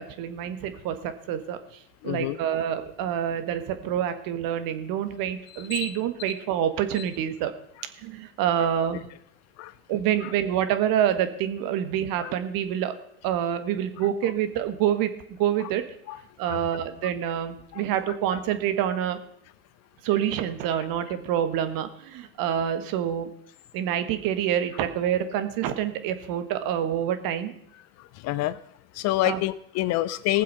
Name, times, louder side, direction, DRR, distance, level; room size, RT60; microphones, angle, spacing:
voice 1, 0.0-1.6 2.0-7.5 8.0-9.1 9.9-12.9 13.2-15.8 16.4-19.2 20.0-23.3 23.7-27.6 29.2-29.4, right 10 dB, 50° right, 10 dB, 1.7 m, -27 dB
voice 2, 2.0-2.4 5.7-5.9 7.0-7.1 8.6-8.7 9.6-9.7 10.2-10.3 12.2-12.3 16.1-16.2 16.5-16.6 17.7-17.8 28.0-28.6 28.9-30.4, left 16 dB, 35° left, 16 dB, 0.5 m, -27 dB
19.0 x 7.5 x 5.7 m, 0.71 s
hypercardioid pair, 90°, 45 cm